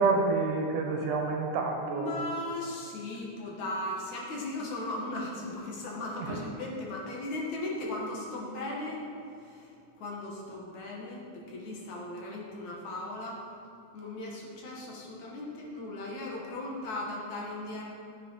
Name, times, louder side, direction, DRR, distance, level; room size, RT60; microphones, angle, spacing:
voice 1, 0.0-2.2 6.2-6.4, right 4 dB, 80° right, 2 dB, 2.9 m, -28 dB
voice 2, 1.9-9.0 9.4-9.7 10.0-13.4 13.9-17.8, left 2 dB, 65° left, -2 dB, 3.1 m, -37 dB
12.5 x 7.9 x 5.7 m, 2.7 s
omnidirectional pair, 3.6 m